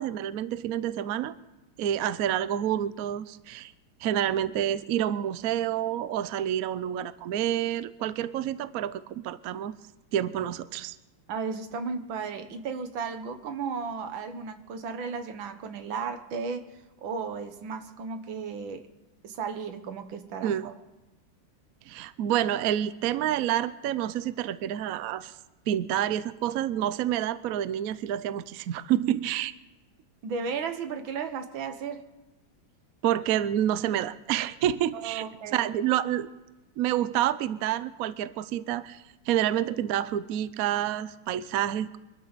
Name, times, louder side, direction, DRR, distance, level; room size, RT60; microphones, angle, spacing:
voice 1, 0.0-1.3 1.8-3.7 4.0-9.7 10.1-11.0 20.4-20.7 21.9-25.3 25.7-29.5 33.0-35.2 35.5-36.3 36.8-42.0, right 11 dB, 65° right, 14 dB, 0.9 m, -28 dB
voice 2, 11.3-16.7 17.0-18.9 19.2-20.8 30.2-32.1 34.9-35.7, right 5 dB, 90° right, 8 dB, 2.0 m, -34 dB
24.0 x 13.0 x 4.1 m, 1.1 s
omnidirectional pair, 2.1 m